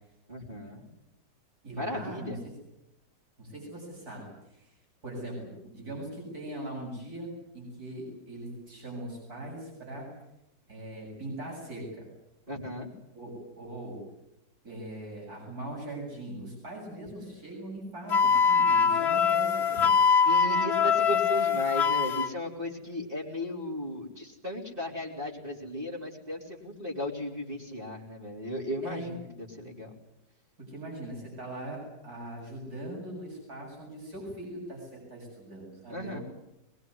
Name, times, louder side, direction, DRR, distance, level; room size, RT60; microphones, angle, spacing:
voice 1, 0.3-0.9 1.7-2.4 12.5-12.9 20.2-30.0 35.9-36.2, left 1 dB, 30° right, -4 dB, 3.6 m, -36 dB
voice 2, 1.6-2.5 3.4-4.7 5.0-10.1 10.7-12.1 13.1-14.0 14.6-19.9 28.8-29.1 30.6-36.2, right 1 dB, 55° right, -1 dB, 8.2 m, -41 dB
Wind instrument woodwind instrument, 18.1-22.3, left 6 dB, 35° left, 2.0 m, -23 dB
22.5 x 21.5 x 9.6 m, 0.89 s
omnidirectional pair, 1.9 m